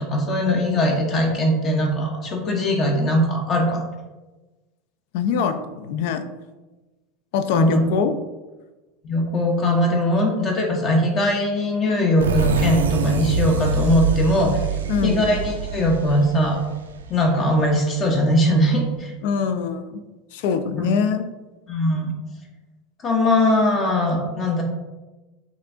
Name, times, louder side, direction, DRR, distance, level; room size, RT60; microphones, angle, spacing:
voice 1, 0.0-3.8 7.5-7.9 9.0-14.6 15.0-16.6 17.1-19.1 20.8-20.9 21.7-22.1 23.0-24.6, left 1 dB, 35° left, 1 dB, 0.8 m, -20 dB
voice 2, 5.1-6.3 7.3-8.1 14.9-15.2 19.2-20.0 20.3-21.2, left 6 dB, 60° left, 10 dB, 0.3 m, -23 dB
sound 1, 12.2-17.7, right 4 dB, 75° right, 0.4 m, -25 dB
6.2 x 2.5 x 2.5 m, 1.2 s
figure-of-eight pair, 80°, 0 cm